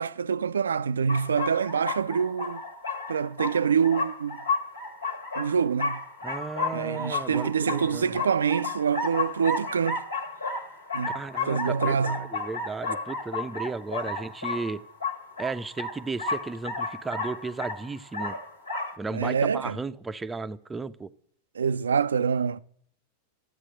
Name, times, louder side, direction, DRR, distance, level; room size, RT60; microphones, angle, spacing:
voice 1, 0.0-2.6 3.1-4.4 5.4-6.0 6.7-10.0 10.9-11.2 11.4-12.3 19.1-19.8 21.6-22.6, right 6 dB, 70° right, 0.4 m, -26 dB
sound 1, 1.1-19.0, left 3 dB, 80° left, 1.8 m, -33 dB
voice 2, 6.2-8.1 11.1-14.8 15.4-18.4 19.0-21.1, right 3 dB, 10° right, 0.5 m, -34 dB
11.0 x 8.2 x 7.6 m
figure-of-eight pair, 90°, 0 cm